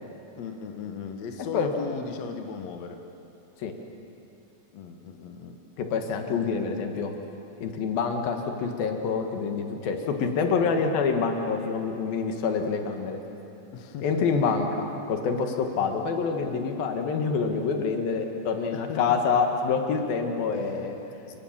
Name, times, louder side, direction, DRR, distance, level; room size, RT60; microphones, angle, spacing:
voice 1, 0.4-3.0 4.7-5.6 13.7-14.4 15.3-15.4 16.4-16.5 18.7-19.2 20.5-21.4, left 5 dB, 60° left, 5 dB, 2.2 m, -37 dB
voice 2, 5.8-7.1 7.6-13.2 14.0-20.9, left 5 dB, 80° left, 4 dB, 3.5 m, -26 dB
29.0 x 19.5 x 7.4 m, 2.9 s
omnidirectional pair, 4.1 m